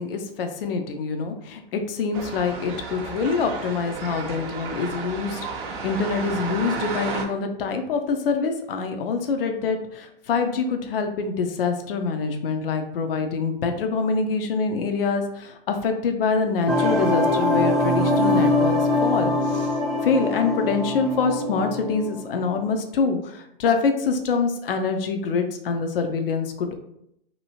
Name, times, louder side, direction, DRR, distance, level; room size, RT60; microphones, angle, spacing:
voice 1, 0.0-18.8 19.0-19.7 20.0-26.8, left 4 dB, 70° left, 5 dB, 0.5 m, -25 dB
sound 1, 2.1-7.2, right 4 dB, 30° right, 0.7 m, -33 dB
sound 2, 16.7-22.5, left 2 dB, ahead, 0.3 m, -23 dB
2.8 x 2.6 x 2.8 m, 0.76 s
hypercardioid pair, 110°, 30 cm